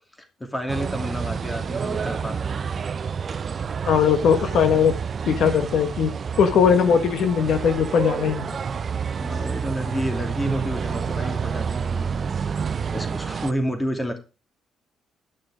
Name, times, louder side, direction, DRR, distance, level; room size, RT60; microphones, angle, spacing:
voice 1, 0.4-2.6 3.5-3.6 9.2-12.1 12.9-14.2, equal, 15° left, 5 dB, 2.7 m, -30 dB
Street Noise in Centro Habana, 0.7-13.5, right 6 dB, 45° right, 0.5 m, -29 dB
voice 2, 3.9-4.9 5.3-6.1 6.4-8.5, left 7 dB, 70° left, 8 dB, 1.3 m, -19 dB
11.5 x 6.3 x 5.0 m, 0.32 s
cardioid pair, 90°, 0 cm